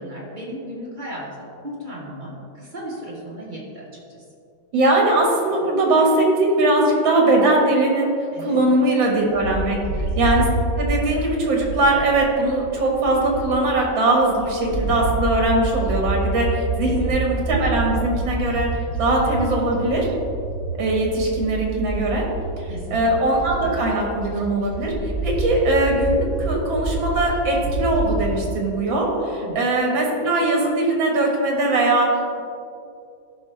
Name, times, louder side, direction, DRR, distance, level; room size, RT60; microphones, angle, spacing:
voice 1, 0.0-4.2 8.3-8.6 9.8-10.0 17.0-17.1 22.7-23.1 29.4-29.6, right 1 dB, 25° right, -4 dB, 1.4 m, -35 dB
voice 2, 4.7-9.9 10.2-10.5 10.8-18.7 19.0-20.1 20.8-22.3 22.6-32.4, right 2 dB, 75° right, -1 dB, 2.3 m, -20 dB
Bird, 9.3-13.8 14.2-28.4, right 2 dB, 50° left, 1.4 m, -28 dB
12.5 x 5.4 x 3.4 m, 2.5 s
omnidirectional pair, 2.1 m